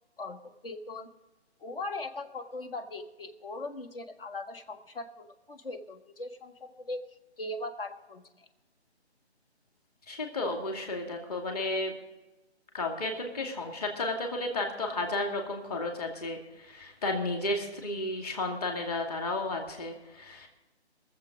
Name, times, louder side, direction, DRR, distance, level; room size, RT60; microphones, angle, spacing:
voice 1, 0.2-1.1 1.6-7.0 7.4-8.5, left 2 dB, 55° left, 7 dB, 1.6 m, -40 dB
voice 2, 10.1-11.9 12.7-20.5, left 2 dB, 35° left, 2 dB, 2.5 m, -33 dB
22.5 x 7.7 x 5.2 m, 1.1 s
hypercardioid pair, 165°, 34 cm